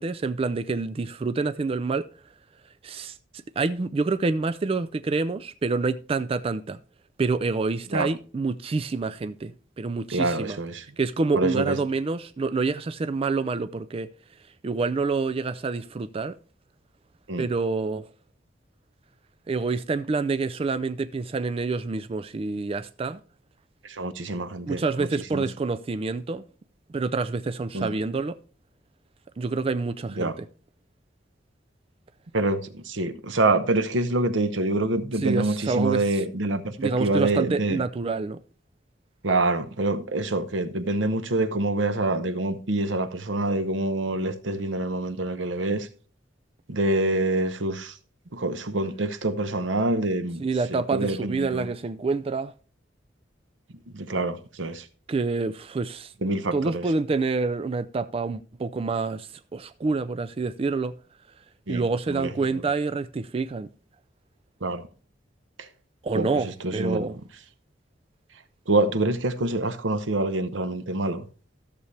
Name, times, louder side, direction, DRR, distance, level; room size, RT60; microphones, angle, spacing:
voice 1, 0.0-2.1 2.8-3.2 3.6-6.8 7.2-10.6 11.0-14.1 14.6-16.4 17.4-18.1 19.5-23.2 24.7-26.4 26.9-28.4 29.4-30.5 35.2-36.0 36.8-38.4 50.4-52.5 55.1-56.1 56.5-60.9 61.7-63.7 66.0-67.2, right 4 dB, 30° right, 0.4 m, -27 dB
voice 2, 10.1-10.8 11.3-11.8 17.3-17.5 23.8-25.5 27.7-27.9 30.2-30.3 32.3-37.8 39.2-45.9 46.7-48.0 48.3-50.4 50.7-51.7 53.9-54.9 56.2-56.8 61.7-61.8 62.1-62.6 64.6-64.8 65.6-65.7 66.1-67.1 68.7-71.2, right 2 dB, 90° right, 0.9 m, -26 dB
14.0 x 6.9 x 3.3 m
head